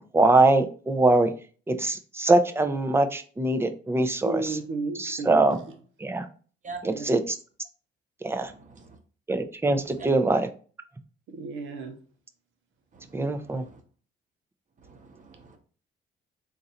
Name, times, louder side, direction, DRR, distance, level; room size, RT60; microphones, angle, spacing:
voice 1, 0.0-1.3 1.7-4.6 5.0-5.6 6.0-6.3 6.8-7.4 8.2-8.5 9.3-10.5 13.1-13.6, right 2 dB, 10° right, 0.5 m, -23 dB
voice 2, 4.2-5.6 6.8-7.1 11.3-11.9, right 3 dB, 85° right, 0.8 m, -33 dB
voice 3, 8.4-9.0 10.0-10.1 12.9-13.8 14.8-15.6, right 4 dB, 40° right, 1.0 m, -44 dB
3.8 x 2.6 x 4.2 m
cardioid pair, 90°, 20 cm